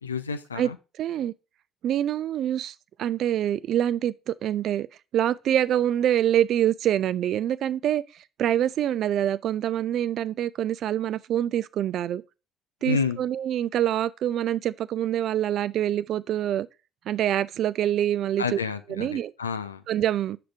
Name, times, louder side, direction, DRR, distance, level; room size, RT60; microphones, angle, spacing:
voice 1, 0.0-0.8 12.8-13.2 18.4-19.8, left 5 dB, 85° left, 0.4 m, -29 dB
voice 2, 1.0-1.3 1.8-4.9 5.1-8.0 8.4-12.2 12.8-16.7 17.1-18.6 19.0-19.3 19.9-20.4, right 11 dB, 55° right, 0.3 m, -25 dB
6.7 x 6.4 x 3.3 m
figure-of-eight pair, 50°, 0 cm